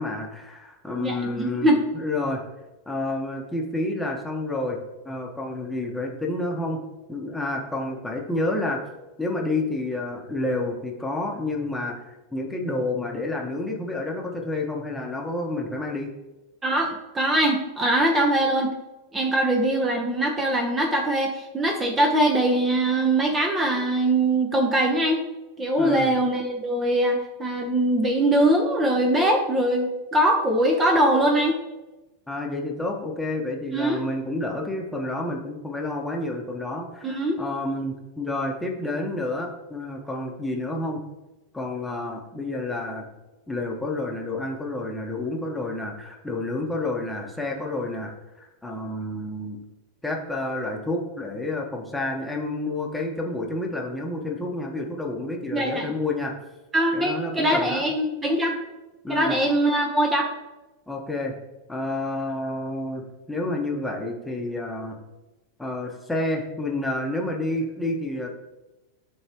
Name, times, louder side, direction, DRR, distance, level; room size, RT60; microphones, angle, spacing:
voice 1, 0.0-1.7 1.9-2.4 2.9-4.8 5.0-6.8 7.1-8.8 9.2-16.1 25.8-26.1 32.3-41.0 41.5-43.1 43.5-49.6 50.0-56.3 56.9-57.8 59.0-59.4 60.9-61.4 61.7-65.0 65.6-68.3, left 2 dB, 5° left, 0 dB, 1.2 m, -29 dB
voice 2, 1.0-1.8 16.6-18.7 19.1-25.2 25.6-31.6 33.7-34.0 37.0-37.4 55.5-55.8 56.7-58.5 59.1-60.3, right 1 dB, 20° right, 2 dB, 0.9 m, -22 dB
11.0 x 3.6 x 3.0 m, 1.0 s
hypercardioid pair, 95°, 0 cm